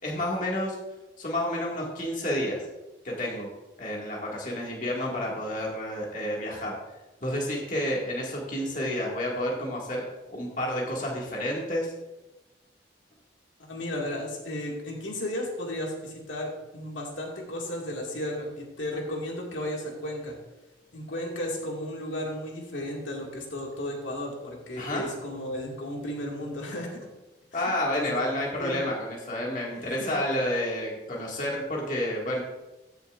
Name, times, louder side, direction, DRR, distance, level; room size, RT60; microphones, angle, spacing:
voice 1, 0.0-0.8 1.2-2.6 3.0-3.5 3.8-6.7 7.2-10.0 10.3-11.9 24.8-25.0 27.5-32.4, left 1 dB, 45° left, -3 dB, 2.0 m, -30 dB
voice 2, 13.7-20.3 20.9-27.0 27.5-28.2 28.6-28.8 29.8-30.1, left 1 dB, 85° left, -2 dB, 2.0 m, -34 dB
15.0 x 6.9 x 2.5 m, 1.0 s
head